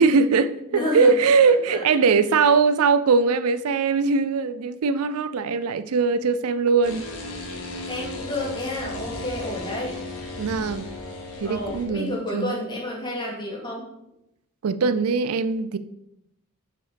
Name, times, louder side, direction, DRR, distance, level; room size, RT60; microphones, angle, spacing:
voice 1, 0.0-7.0 10.4-10.9 11.4-12.5 14.6-15.8, right 5 dB, 85° right, 14 dB, 0.5 m, -21 dB
voice 2, 0.7-1.1 1.4-1.9 7.9-10.0 11.4-13.8, left 1 dB, 20° left, -2 dB, 2.3 m, -30 dB
sound 1, 6.8-11.8, left 2 dB, 90° left, 2.1 m, -35 dB
7.4 x 5.8 x 5.1 m, 0.83 s
head